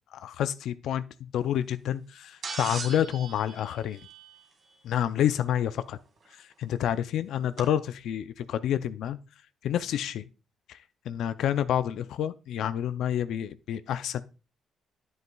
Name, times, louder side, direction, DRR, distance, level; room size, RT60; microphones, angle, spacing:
voice 1, 0.1-4.0 4.8-6.0 6.4-9.2 9.6-10.2 10.7-10.8 11.1-14.2, left 10 dB, 75° left, 0.4 m, -29 dB
sound 1, 2.4-4.7 6.3-6.4 7.6-7.7, right 4 dB, 55° right, 1.9 m, -39 dB
9.4 x 7.9 x 2.3 m
cardioid pair, 90°, 0 cm